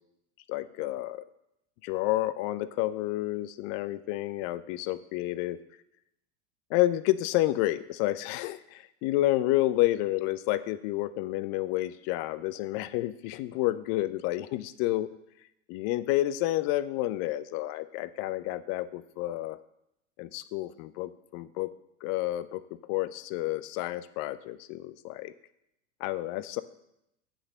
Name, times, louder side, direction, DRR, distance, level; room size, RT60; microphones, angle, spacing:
voice 1, 0.5-1.2 1.8-5.6 6.7-15.1 15.7-19.6 20.2-21.7 22.0-22.6 22.9-25.3 26.0-26.6, left 16 dB, 35° left, 15 dB, 0.5 m, -30 dB
7.8 x 6.2 x 6.6 m, 0.82 s
figure-of-eight pair, 85°, 37 cm